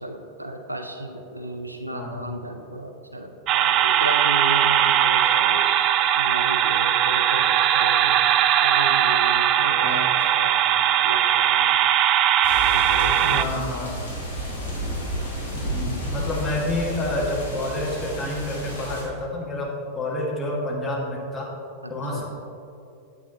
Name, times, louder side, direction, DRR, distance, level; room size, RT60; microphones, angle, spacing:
voice 1, 0.0-5.6 6.1-8.2 8.6-11.7 12.5-13.5 21.8-22.3, right 1 dB, 85° right, 5 dB, 0.5 m, -34 dB
sound 1, 3.5-13.4, right 10 dB, 35° right, 0.3 m, -20 dB
sound 2, 12.4-19.0, equal, 70° left, 1.9 m, -31 dB
voice 2, 13.2-14.0 15.5-21.5 21.9-22.3, left 1 dB, 20° left, -3 dB, 1.7 m, -29 dB
8.6 x 8.3 x 2.9 m, 2.6 s
figure-of-eight pair, 90°, 0 cm